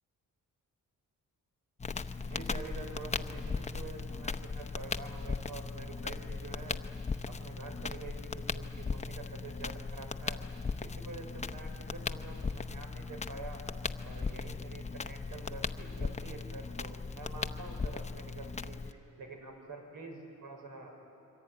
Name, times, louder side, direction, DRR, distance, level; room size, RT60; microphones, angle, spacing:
Crackle, 1.8-18.9, left 4 dB, 20° left, 0.7 m, -38 dB
voice 1, 2.2-6.8 7.3-10.4 10.8-13.6 14.0-20.9, right 3 dB, 80° right, 2 dB, 5.4 m, -47 dB
25.5 x 24.5 x 9.3 m, 2.9 s
cardioid pair, 130°, 33 cm